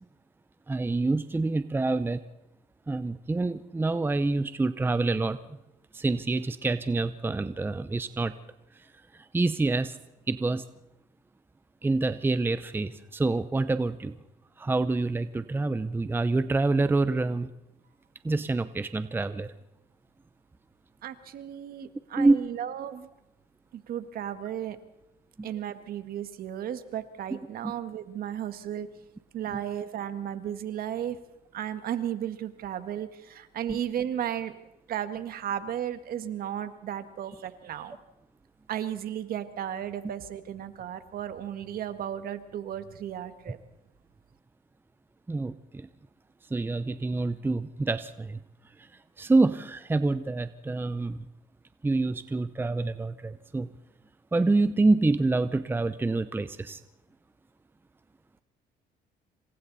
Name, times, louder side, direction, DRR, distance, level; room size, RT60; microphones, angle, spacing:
voice 1, 0.7-2.2 2.9-5.4 5.9-8.3 9.3-10.0 10.3-10.6 11.8-14.2 14.6-17.5 18.2-19.5 22.2-22.4 25.4-25.5 27.6-27.7 29.5-29.6 33.7-33.8 45.3-45.9 46.5-48.4 49.2-51.3 51.8-53.7 54.3-56.8, right 3 dB, 10° right, 12 dB, 0.7 m, -27 dB
voice 2, 21.0-23.1 23.7-24.8 25.4-28.9 29.3-31.2 31.5-34.5 34.9-38.0 38.7-43.6, right 10 dB, 60° right, 10 dB, 1.7 m, -34 dB
27.5 x 25.5 x 4.2 m, 0.90 s
cardioid pair, 110°, 17 cm